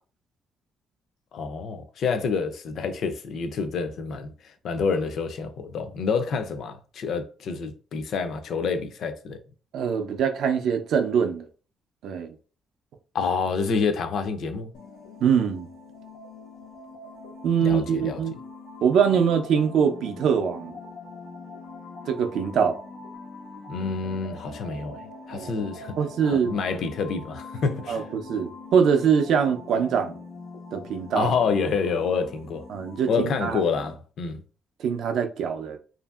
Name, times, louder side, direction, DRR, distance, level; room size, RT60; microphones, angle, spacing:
voice 1, 1.3-9.4 13.1-14.7 17.6-18.2 23.7-25.0 25.3-26.0 26.2-28.0 31.1-32.7 33.1-34.4, left 5 dB, 55° left, 0.4 m, -28 dB
voice 2, 9.7-11.5 12.0-12.3 15.2-15.7 17.4-18.3 18.8-20.8 22.1-22.8 25.3-25.7 26.0-26.5 27.9-30.2 30.7-31.3 32.7-33.6 34.8-35.8, right 7 dB, 65° right, 0.4 m, -23 dB
sound 1, 14.7-33.9, left 3 dB, 85° left, 0.8 m, -43 dB
2.8 x 2.5 x 2.3 m
cardioid pair, 165°, 0 cm